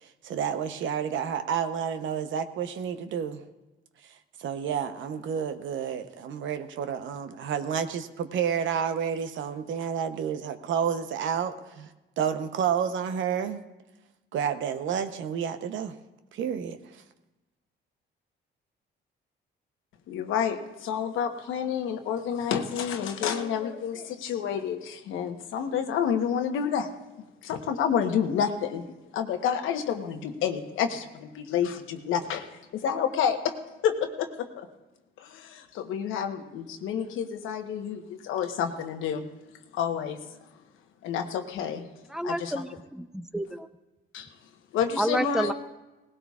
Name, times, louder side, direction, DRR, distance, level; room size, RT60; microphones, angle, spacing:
voice 1, 0.0-3.4 4.0-4.1 4.4-11.9 12.2-13.6 14.3-15.9 16.3-17.0, right 8 dB, 75° right, 10 dB, 0.8 m, -30 dB
voice 2, 20.1-26.9 27.4-28.9 29.1-32.5 32.7-33.5 33.8-34.7 35.2-39.2 39.7-40.2 41.0-41.8 42.2-42.6 44.1-44.3 44.7-45.5, left 8 dB, 90° left, 6 dB, 1.1 m, -29 dB
voice 3, 42.1-43.7 45.0-45.5, equal, 5° right, 11 dB, 0.6 m, -30 dB
18.5 x 16.5 x 2.4 m, 1.1 s
cardioid pair, 90°, 20 cm